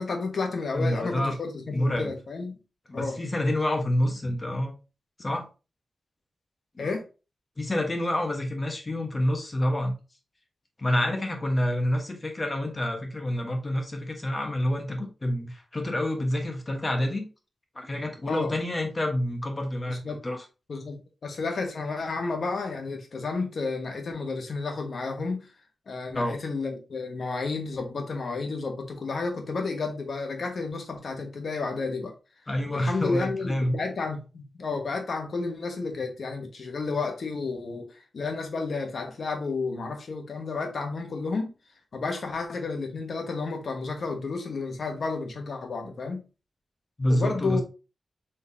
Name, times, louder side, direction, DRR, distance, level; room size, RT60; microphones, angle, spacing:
voice 1, 0.0-2.6 2.9-3.2 6.8-7.0 18.3-18.5 19.9-20.2 20.7-25.5 25.9-32.1 32.7-41.5 41.9-46.2 47.1-47.6, left 4 dB, 65° left, 1.0 m, -31 dB
voice 2, 0.7-1.3 1.7-2.1 2.9-4.7 5.2-5.5 6.7-6.8 7.6-9.9 10.8-17.2 17.7-20.4 26.1-26.4 32.5-33.8 47.0-47.6, left 1 dB, 30° left, 1.3 m, -28 dB
4.4 x 3.6 x 2.7 m
cardioid pair, 75°, 0 cm